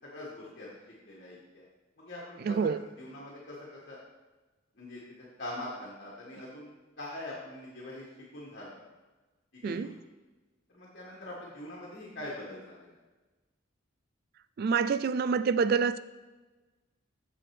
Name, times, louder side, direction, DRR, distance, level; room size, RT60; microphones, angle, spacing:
voice 1, 0.0-0.7 1.0-1.6 2.0-2.7 3.0-4.0 4.7-6.7 7.0-8.8 9.5-9.9 10.7-13.0, left 1 dB, 50° left, -6 dB, 1.7 m, -43 dB
voice 2, 2.5-2.8 9.6-9.9 14.6-16.0, right 5 dB, 50° right, 13 dB, 0.3 m, -27 dB
7.5 x 7.0 x 3.3 m, 1.2 s
head